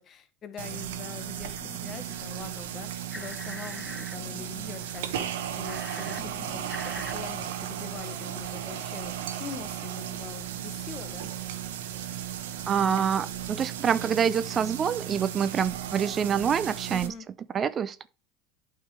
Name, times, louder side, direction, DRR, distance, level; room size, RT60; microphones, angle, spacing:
voice 1, 0.0-11.3 16.9-17.3, left 7 dB, 35° left, 1.1 m, -43 dB
sound 1, 0.6-17.1, right 10 dB, 85° right, 0.9 m, -35 dB
sound 2, 1.6-2.6 2.9-5.4 5.6-7.1, left 2 dB, 10° left, 0.8 m, -44 dB
voice 2, 12.7-17.1 17.5-18.1, right 7 dB, 30° right, 0.3 m, -26 dB
8.5 x 3.7 x 4.7 m
supercardioid pair, 120°, 0 cm